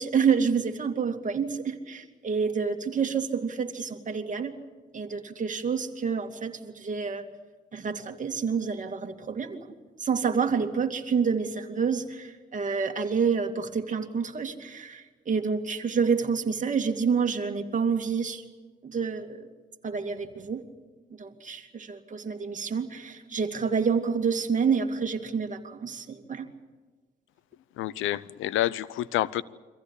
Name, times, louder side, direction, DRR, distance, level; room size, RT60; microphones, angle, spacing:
voice 1, 0.0-4.5 4.9-7.2 7.7-9.6 10.0-18.4 18.8-19.5 19.8-20.6 21.2-26.5, right 6 dB, 40° right, 2.5 m, -28 dB
voice 2, 27.8-29.4, left 14 dB, 85° left, 0.7 m, -28 dB
24.5 x 15.5 x 9.9 m
cardioid pair, 90°, 20 cm